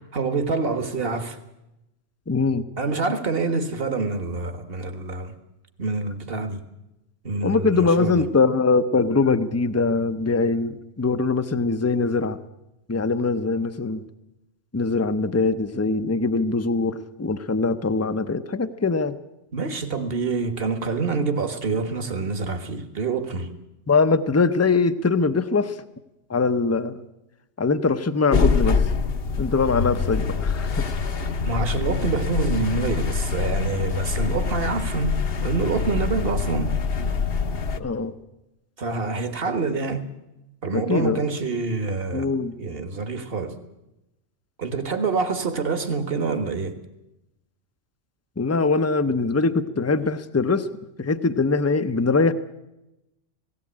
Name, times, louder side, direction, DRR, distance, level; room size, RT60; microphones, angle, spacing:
voice 1, 0.1-1.4 2.8-5.3 5.8-6.6 7.2-8.2 19.5-23.5 31.4-36.8 38.8-40.0 40.6-42.3 42.6-43.6 44.6-46.8, right 4 dB, 50° right, 1.7 m, -26 dB
voice 2, 2.3-2.6 7.4-12.4 12.9-14.0 14.7-19.2 23.9-25.8 26.3-27.0 27.6-28.8 29.4-30.8 37.7-38.1 40.7-41.2 42.1-42.5 48.4-50.7 51.0-52.3, left 4 dB, 15° left, 0.6 m, -22 dB
sound 1, 28.3-37.8, left 5 dB, 55° left, 1.1 m, -25 dB
18.0 x 17.5 x 8.7 m
omnidirectional pair, 1.2 m